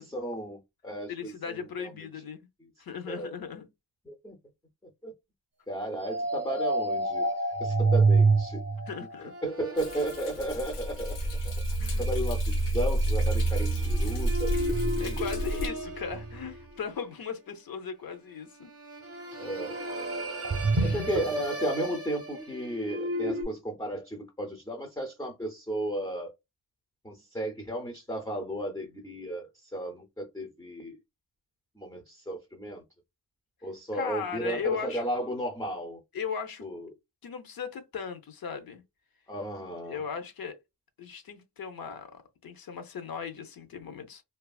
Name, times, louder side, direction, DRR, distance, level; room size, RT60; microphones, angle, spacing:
voice 1, 0.0-1.3 1.8-2.1 3.1-3.3 4.1-4.4 5.0-5.1 5.7-7.3 7.6-8.6 9.4-11.2 12.0-14.6 15.0-15.2 15.5-15.6 19.4-19.8 20.8-26.3 27.0-31.0 31.8-32.8 33.6-36.0 36.6-36.9 39.3-40.0, right 1 dB, 10° left, 0.4 m, -34 dB
voice 2, 1.1-2.5 2.8-3.7 8.9-9.3 11.8-12.0 15.0-18.7 20.7-21.0 33.9-35.1 36.1-36.7 37.2-38.8 39.9-40.6 41.0-44.2, left 6 dB, 60° left, 0.6 m, -37 dB
sound 1, 6.0-17.1 18.6-23.4, right 2 dB, 35° right, 0.6 m, -29 dB
Thunder, 9.8-15.7, equal, 85° left, 0.9 m, -34 dB
2.7 x 2.3 x 2.3 m
wide cardioid pair, 155°, 42 cm